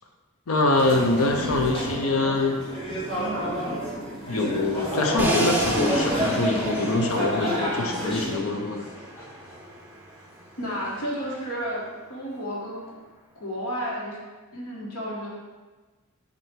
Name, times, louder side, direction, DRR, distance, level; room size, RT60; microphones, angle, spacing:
voice 1, 0.5-2.6 4.3-8.9, left 2 dB, 70° left, 3 dB, 0.7 m, -24 dB
sound 1, 0.7-8.4, right 1 dB, 30° left, 1.8 m, -30 dB
Laughter / Crowd, 4.6-10.1 10.7-10.8 11.6-11.8, equal, 10° left, 1.7 m, -31 dB
Crash cymbal, 5.2-11.2, right 1 dB, 10° right, 0.6 m, -34 dB
voice 2, 10.6-13.0 13.3-14.2 14.5-15.3, equal, 90° left, -5 dB, 1.5 m, -32 dB
7.9 x 2.7 x 4.5 m, 1.3 s
head